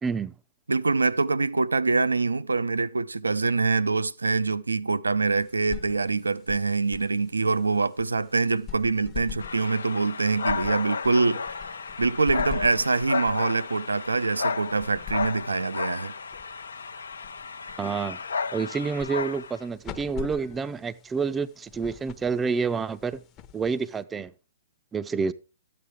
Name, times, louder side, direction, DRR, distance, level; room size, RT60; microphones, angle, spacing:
voice 1, 0.0-0.4 17.8-18.2 18.5-23.2 23.5-24.3 24.9-25.3, right 5 dB, 15° right, 0.5 m, -28 dB
voice 2, 0.7-16.1, right 3 dB, 80° right, 0.5 m, -25 dB
sound 1, 5.4-24.3, left 10 dB, 25° left, 0.8 m, -44 dB
sound 2, 9.4-19.6, left 5 dB, 70° left, 0.7 m, -33 dB
13.0 x 8.6 x 3.4 m
figure-of-eight pair, 120°, 0 cm